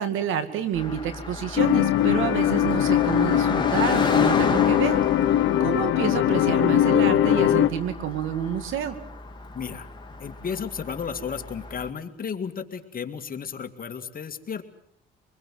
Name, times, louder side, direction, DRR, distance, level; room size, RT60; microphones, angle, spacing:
voice 1, 0.0-5.0 5.6-9.0, right 9 dB, 85° right, 11 dB, 2.2 m, -29 dB
Car passing by, 0.7-11.9, left 3 dB, 20° left, 2.7 m, -33 dB
sound 1, 1.6-7.7, left 11 dB, 80° left, 0.9 m, -21 dB
voice 2, 9.5-9.9 10.2-14.6, left 6 dB, 45° left, 7 dB, 2.3 m, -33 dB
25.0 x 21.0 x 7.7 m, 0.70 s
cardioid pair, 90°, 20 cm